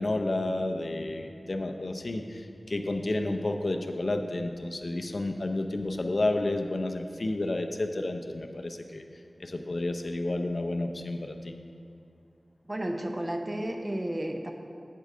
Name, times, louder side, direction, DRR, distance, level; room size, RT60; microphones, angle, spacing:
voice 1, 0.0-9.0 9.4-11.5, left 2 dB, 55° left, 6 dB, 0.6 m, -31 dB
voice 2, 12.7-14.5, right 1 dB, 30° right, 3 dB, 0.8 m, -32 dB
8.6 x 8.2 x 3.8 m, 2.4 s
wide cardioid pair, 75°, 0 cm